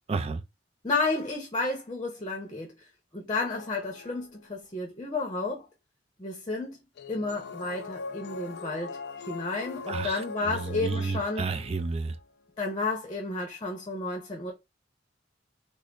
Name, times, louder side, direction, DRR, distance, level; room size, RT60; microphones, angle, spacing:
voice 1, 0.1-0.4 9.9-12.2, right 4 dB, 30° right, 0.3 m, -31 dB
voice 2, 0.8-5.7 6.2-6.8 7.1-9.0 9.3-11.5 12.6-14.5, left 3 dB, 25° left, 0.7 m, -32 dB
sound 1, 3.3-4.7 7.0-12.2, left 4 dB, 60° left, 0.4 m, -41 dB
3.4 x 2.0 x 3.7 m
head